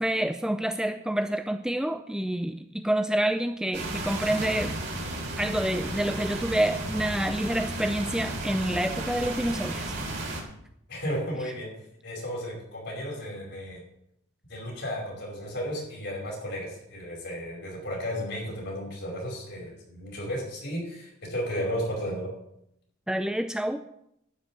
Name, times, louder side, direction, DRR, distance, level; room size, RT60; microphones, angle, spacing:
voice 1, 0.0-4.7 5.4-9.9 23.1-23.8, right 1 dB, 5° right, 7 dB, 0.4 m, -28 dB
sound 1, 3.7-10.4, right 2 dB, 55° right, 3.1 m, -33 dB
voice 2, 10.9-11.7 12.0-13.8 14.5-22.3, equal, 55° left, -1 dB, 5.3 m, -34 dB
12.0 x 5.6 x 9.1 m, 0.77 s
head